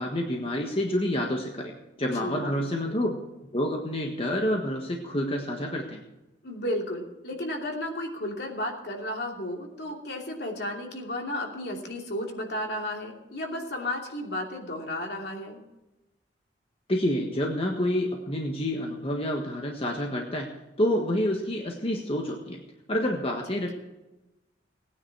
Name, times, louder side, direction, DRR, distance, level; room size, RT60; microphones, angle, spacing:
voice 1, 0.0-1.7 2.0-3.2 3.5-6.0 16.9-20.5 20.8-22.6 22.9-23.7, left 1 dB, 30° left, 1 dB, 1.5 m, -28 dB
voice 2, 2.1-2.6 6.4-15.6 23.5-23.7, left 1 dB, 60° left, 1 dB, 2.8 m, -33 dB
18.0 x 9.8 x 4.7 m, 1.0 s
head